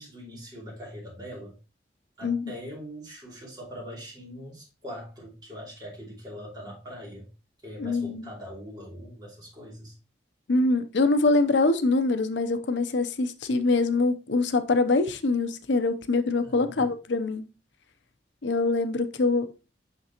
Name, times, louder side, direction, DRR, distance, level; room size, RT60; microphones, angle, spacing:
voice 1, 0.0-1.5 2.2-7.3 7.6-9.9 16.4-16.8, equal, 20° right, 2.8 m, -42 dB
voice 2, 2.2-2.5 7.8-8.3 10.5-17.5 18.4-19.5, left 3 dB, 85° left, 0.6 m, -24 dB
6.0 x 5.9 x 2.9 m
head